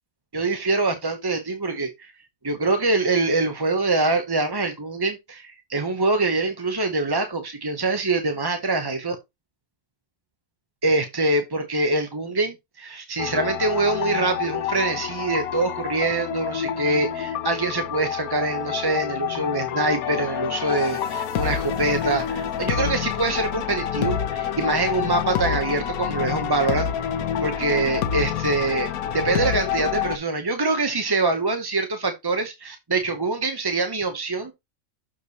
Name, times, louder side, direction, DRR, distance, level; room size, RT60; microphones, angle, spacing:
voice 1, 0.3-2.1 2.4-9.2 10.8-26.9 27.4-34.5, right 3 dB, 20° right, 0.7 m, -24 dB
sound 1, 13.2-30.2, left 8 dB, 90° left, 1.2 m, -27 dB
6.7 x 5.0 x 4.1 m
omnidirectional pair, 1.5 m